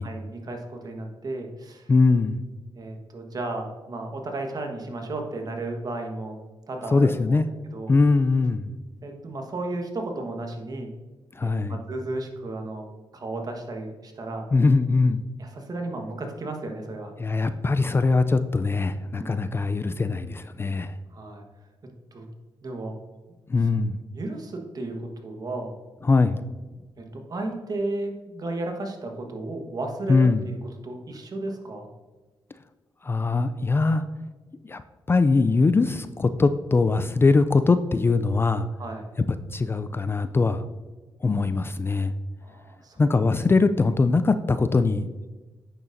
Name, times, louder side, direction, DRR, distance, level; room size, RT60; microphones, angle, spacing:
voice 1, 0.0-1.9 2.7-6.4 6.7-7.4 7.7-7.9 9.0-10.9 11.4-12.9 13.1-14.4 15.4-17.1 19.1-19.4 21.1-21.4 22.1-22.3 22.6-23.0 24.1-25.7 27.0-30.6 30.8-31.9 38.8-39.1 42.4-43.1, right 2 dB, 45° right, 3 dB, 1.3 m, -34 dB
voice 2, 1.9-2.4 6.9-7.5 7.9-8.7 11.3-11.8 14.5-15.2 17.2-20.9 23.5-24.0 26.0-26.4 30.1-30.4 33.0-34.0 34.6-34.8 35.1-38.7 39.5-40.6 41.2-42.1 43.0-45.1, left 3 dB, 25° left, 11 dB, 0.3 m, -21 dB
8.7 x 6.6 x 2.6 m, 1.2 s
cardioid pair, 80°, 9 cm